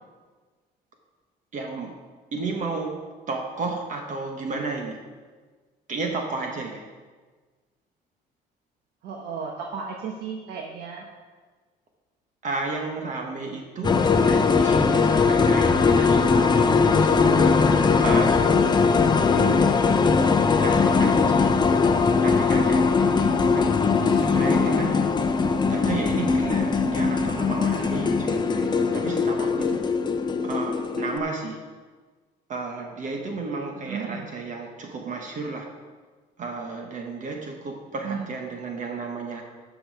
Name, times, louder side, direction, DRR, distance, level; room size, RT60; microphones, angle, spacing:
voice 1, 1.5-1.9 2.3-2.9 3.3-5.0 5.9-6.8 12.4-17.3 18.0-20.3 20.6-21.5 22.2-23.8 24.1-25.0 25.7-29.8 30.4-31.6 32.5-35.7 36.4-39.4, right 3 dB, 50° right, 2 dB, 1.3 m, -33 dB
voice 2, 9.0-11.1 23.8-24.1 33.8-34.3 38.0-38.3, right 6 dB, 70° right, 0 dB, 1.1 m, -34 dB
sound 1, 13.8-31.2, left 5 dB, 25° left, 0.7 m, -20 dB
12.0 x 6.2 x 4.8 m, 1.4 s
cardioid pair, 110°, 17 cm